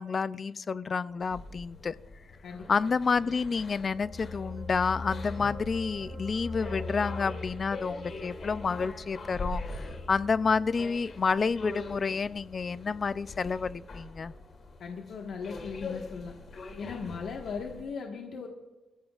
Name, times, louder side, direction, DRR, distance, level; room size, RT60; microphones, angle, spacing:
voice 1, 0.0-1.9 2.7-14.3, left 5 dB, 40° left, 16 dB, 0.4 m, -29 dB
sound 1, 1.2-17.8, left 3 dB, 55° left, 2.6 m, -43 dB
sound 2, 3.8-14.3 14.6-14.8, left 2 dB, 40° right, 2.8 m, -43 dB
voice 2, 14.8-16.4 16.8-18.5, left 5 dB, 80° left, 1 dB, 1.4 m, -38 dB
28.0 x 15.0 x 2.4 m, 1.2 s
wide cardioid pair, 130°, 0 cm